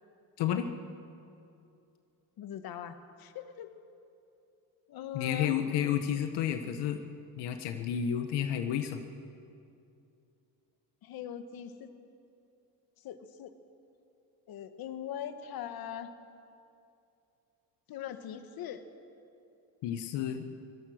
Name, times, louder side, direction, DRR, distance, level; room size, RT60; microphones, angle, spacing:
voice 1, 0.4-0.7 5.1-7.0 7.4-9.0 19.8-20.4, left 9 dB, 85° left, 7 dB, 1.3 m, -31 dB
voice 2, 2.4-3.7 4.9-5.6 11.0-11.9 13.0-13.5 14.5-16.1 17.9-18.8, left 9 dB, 60° left, 9 dB, 1.5 m, -41 dB
24.5 x 17.5 x 6.5 m, 2.6 s
cardioid pair, 115°, 40 cm